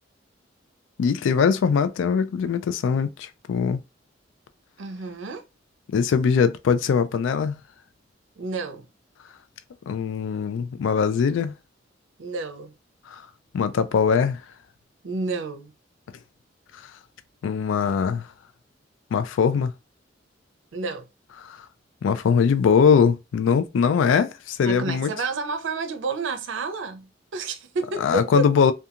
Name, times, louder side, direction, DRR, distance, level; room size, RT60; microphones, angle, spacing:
voice 1, 1.0-3.8 5.9-7.6 9.9-11.5 13.1-13.2 13.5-14.4 17.4-18.3 19.1-19.7 21.5-21.6 22.0-25.1 28.0-28.7, left 6 dB, 80° left, 0.3 m, -21 dB
voice 2, 4.8-5.4 8.4-8.9 12.2-12.7 15.0-15.7 20.7-21.1 24.6-28.4, right 3 dB, 80° right, 0.5 m, -30 dB
2.4 x 2.3 x 2.7 m
head